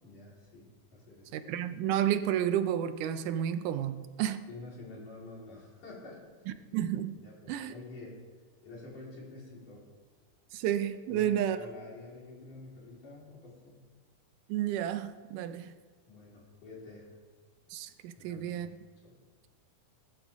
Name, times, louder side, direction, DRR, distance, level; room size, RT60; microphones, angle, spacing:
voice 1, 0.0-1.3 4.5-6.2 7.2-8.2 8.6-9.9 11.1-13.9 16.1-17.1 18.1-18.7 19.0-19.2, left 3 dB, 70° left, -5 dB, 5.6 m, -48 dB
voice 2, 1.3-4.5 6.7-7.2 7.5-7.7 10.5-11.6 14.5-15.7 17.7-18.7, right 10 dB, 80° right, 11 dB, 2.2 m, -31 dB
21.5 x 11.5 x 3.6 m, 1.5 s
omnidirectional pair, 3.8 m